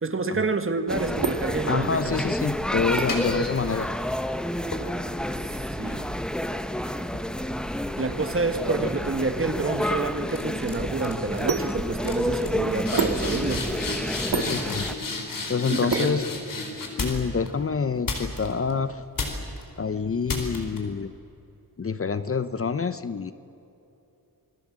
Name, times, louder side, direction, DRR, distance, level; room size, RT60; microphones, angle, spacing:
voice 1, 0.0-2.2 5.8-6.2 8.0-13.7 15.7-16.2, right 3 dB, 35° right, 8 dB, 1.9 m, -28 dB
sound 1, 0.6-17.0, right 4 dB, 70° right, 2.5 m, -35 dB
sound 2, 0.9-14.9, equal, ahead, 0.9 m, -30 dB
voice 2, 1.7-3.9 14.3-14.9 15.5-16.2 17.0-19.0 19.8-21.1 21.8-23.3, left 5 dB, 40° left, 13 dB, 0.8 m, -27 dB
sound 3, 3.1-4.1 4.7-8.3 8.7-9.1 9.8-10.0 10.3-10.7 11.0-11.4 11.7-11.8 12.0-17.5 18.1-18.7 19.2-19.6 20.3-20.8, left 3 dB, 60° left, 4.4 m, -34 dB
28.5 x 21.0 x 7.6 m, 2.9 s
wide cardioid pair, 135°, 36 cm